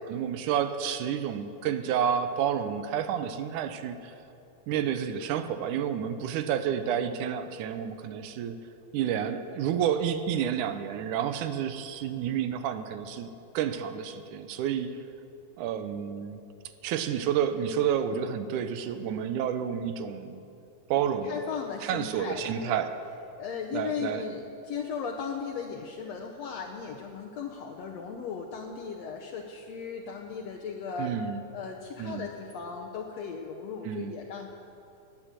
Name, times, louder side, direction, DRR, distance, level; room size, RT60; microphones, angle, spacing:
voice 1, 0.1-4.0 4.7-8.6 8.9-14.9 15.6-16.4 16.8-20.4 20.9-21.4 21.8-22.9 23.7-24.2 31.0-31.4 32.0-32.3 33.8-34.1, right 8 dB, 90° right, 10 dB, 2.3 m, -30 dB
voice 2, 21.2-22.8 23.4-31.2 31.5-34.5, left 6 dB, 70° left, 1 dB, 1.9 m, -37 dB
18.5 x 9.8 x 7.6 m, 2.7 s
omnidirectional pair, 3.6 m